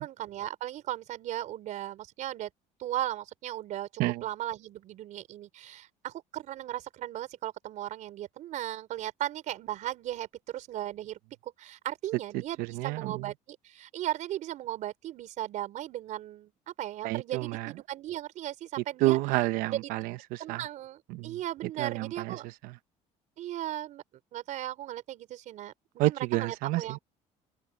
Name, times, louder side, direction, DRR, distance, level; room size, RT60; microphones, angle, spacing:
voice 1, 0.0-2.5 2.8-3.9 4.2-19.2 19.7-19.8 20.4-22.5 23.4-24.0 24.3-25.7 26.0-27.0, right 13 dB, 60° right, 5.0 m, -37 dB
voice 2, 12.3-13.3 17.0-17.7 19.0-20.6 21.1-21.4 21.8-22.4 22.6-22.7 26.0-27.0, right 18 dB, 85° right, 0.9 m, -29 dB
open air
cardioid pair, 130°, 14 cm